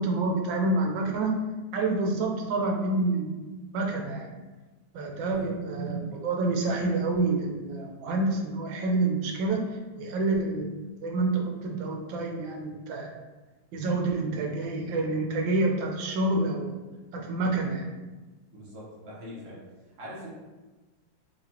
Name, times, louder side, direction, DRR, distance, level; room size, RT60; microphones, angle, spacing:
voice 1, 0.0-1.3 1.7-4.3 4.9-9.6 10.0-10.8 11.0-13.1 13.7-16.7 17.1-17.9, right 2 dB, 85° right, 1 dB, 1.4 m, -28 dB
voice 2, 18.5-19.6 20.0-20.3, equal, 45° right, -6 dB, 1.4 m, -42 dB
4.7 x 2.5 x 2.8 m, 1.2 s
omnidirectional pair, 2.0 m